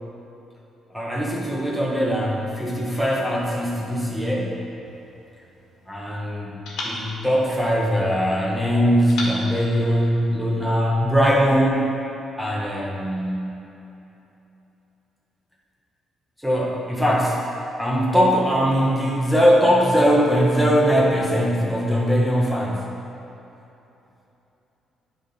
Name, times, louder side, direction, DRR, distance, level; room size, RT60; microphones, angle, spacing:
voice 1, 0.9-4.6 5.9-6.5 6.8-11.8 12.4-13.5 16.4-22.9, equal, ahead, -4 dB, 1.5 m, -21 dB
sound 1, 4.9-6.1 6.7-8.3 9.1-10.7, left 2 dB, 80° left, 1.5 m, -37 dB
9.4 x 3.9 x 5.4 m, 3.0 s
cardioid pair, 90°, 0 cm